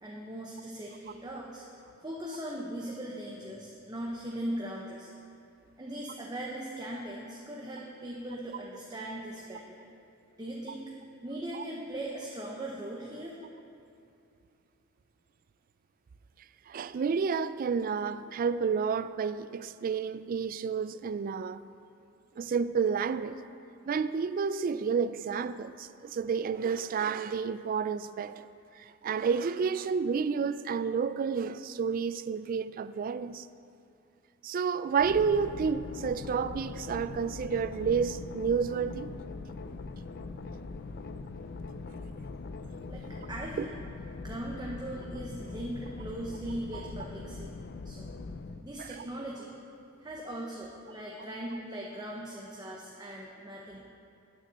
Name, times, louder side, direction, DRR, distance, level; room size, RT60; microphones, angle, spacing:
voice 1, 0.0-1.6 2.0-5.1 5.8-9.8 10.4-10.9 11.2-13.4 42.9-43.0 43.3-43.8 44.2-47.5 47.8-48.1 48.6-49.5 50.0-53.8, right 1 dB, 20° right, 0.9 m, -39 dB
voice 2, 16.7-21.6 22.4-23.4 23.9-28.5 28.8-33.5 34.4-39.1 43.6-43.7 46.7-46.8 48.8-49.0, right 6 dB, 45° right, 0.3 m, -30 dB
sound 1, 35.0-48.6, left 3 dB, 55° left, 0.4 m, -41 dB
9.0 x 6.8 x 7.3 m
head